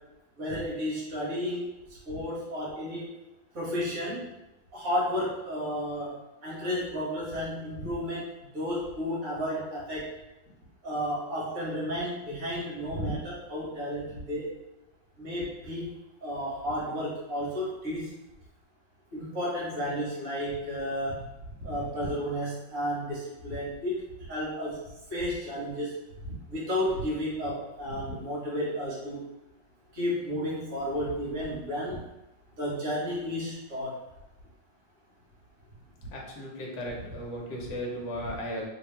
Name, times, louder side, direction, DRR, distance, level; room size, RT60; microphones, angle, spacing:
voice 1, 0.4-1.6 2.1-3.0 3.5-4.2 4.7-6.1 6.4-8.2 8.5-10.1 10.8-14.5 15.2-15.9 16.2-18.0 19.1-21.2 21.6-24.0 24.3-24.8 25.1-26.0 26.5-29.2 29.9-32.0 32.6-34.0, equal, 50° right, -7 dB, 1.6 m, -32 dB
voice 2, 36.1-38.6, equal, 65° left, -2 dB, 1.3 m, -36 dB
3.2 x 2.8 x 3.2 m, 0.98 s
omnidirectional pair, 2.1 m